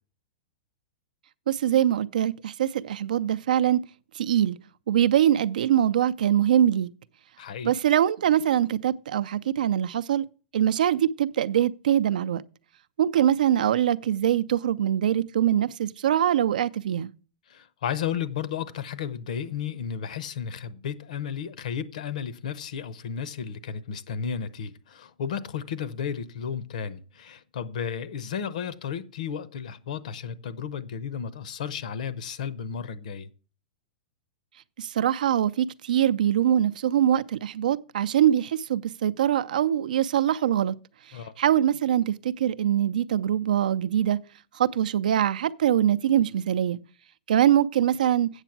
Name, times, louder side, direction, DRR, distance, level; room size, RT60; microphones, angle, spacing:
voice 1, 1.5-3.8 4.1-4.6 4.9-6.9 7.6-10.3 10.5-12.4 13.0-17.1 34.8-40.8 41.4-44.2 44.5-46.8 47.3-48.3, right 10 dB, 80° right, 0.4 m, -23 dB
voice 2, 7.4-7.7 17.5-33.3 41.1-41.3, left 7 dB, 65° left, 0.8 m, -33 dB
8.1 x 6.9 x 5.9 m
supercardioid pair, 170°, 4 cm